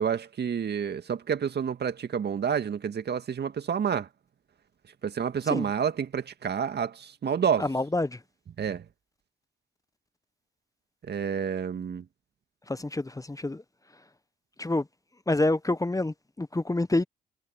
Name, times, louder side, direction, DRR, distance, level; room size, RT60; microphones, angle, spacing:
voice 1, 0.0-4.1 5.0-7.7 8.6-8.9 11.1-12.0, right 7 dB, 55° right, 2.2 m, -29 dB
voice 2, 7.6-8.2 12.7-13.6 14.6-14.8 15.3-17.0, left 2 dB, 15° left, 1.2 m, -27 dB
hypercardioid pair, 45°, 20 cm